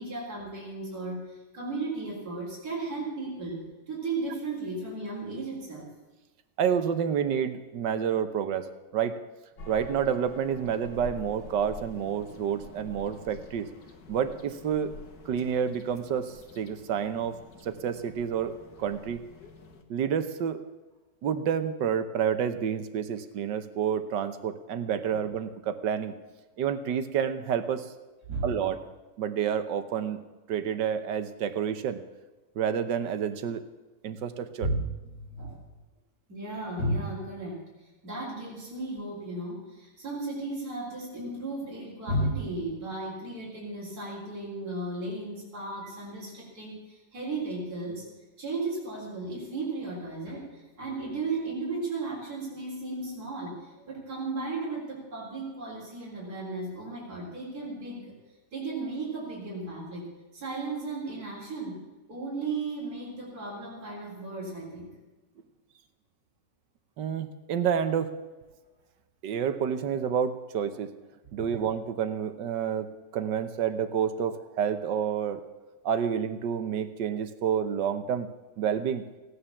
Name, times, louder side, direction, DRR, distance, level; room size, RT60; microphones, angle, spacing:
voice 1, 0.0-5.9 28.3-28.5 34.6-34.9 35.3-35.6 36.3-37.7 38.0-48.0 48.4-58.1 58.5-61.8 62.1-64.9 71.4-71.7, right 2 dB, 55° right, -6 dB, 4.4 m, -35 dB
voice 2, 6.6-9.2 9.7-13.7 14.1-14.9 15.2-17.4 17.6-19.2 19.9-20.6 21.2-26.1 26.6-27.9 28.4-28.8 29.2-30.2 30.5-32.0 32.5-33.6 34.0-34.7 67.0-68.1 69.2-70.9 71.3-75.4 75.8-78.3 78.6-79.0, right 8 dB, 90° right, 10 dB, 1.6 m, -29 dB
sound 1, 9.6-19.8, left 2 dB, 75° left, 2.1 m, -48 dB
16.5 x 10.0 x 7.1 m, 1.1 s
omnidirectional pair, 1.9 m